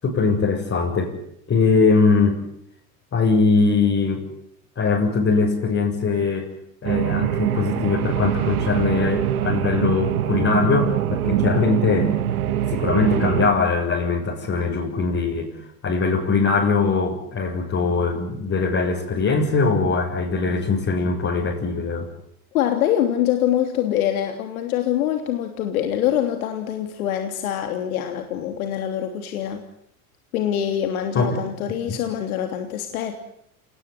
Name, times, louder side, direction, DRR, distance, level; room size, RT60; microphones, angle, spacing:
voice 1, 0.0-1.1 1.5-2.4 3.1-4.2 4.8-6.5 6.8-12.1 12.7-15.5 15.8-22.1 31.1-31.4 31.9-32.0, left 4 dB, 30° left, -1 dB, 7.2 m, -21 dB
sound 1, 6.8-13.5, right 11 dB, 80° right, 1.8 m, -23 dB
voice 2, 22.5-29.6 30.3-33.2, left 10 dB, 75° left, 6 dB, 3.2 m, -24 dB
28.0 x 20.0 x 9.9 m, 0.75 s
hypercardioid pair, 90°, 43 cm